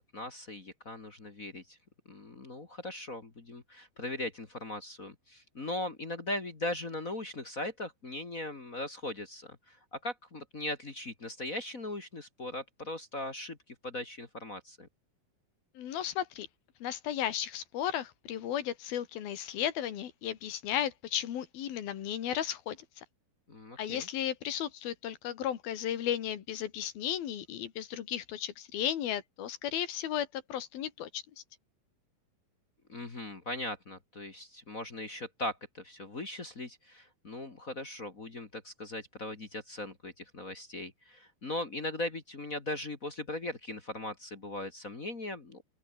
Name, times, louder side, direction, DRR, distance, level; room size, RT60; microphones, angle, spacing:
voice 1, 0.1-1.8 2.1-14.9 23.5-24.1 32.9-45.6, left 1 dB, 30° left, 1.9 m, -39 dB
voice 2, 15.8-16.5 16.8-23.0 23.8-31.2, left 10 dB, 85° left, 3.9 m, -34 dB
open air
omnidirectional pair, 4.1 m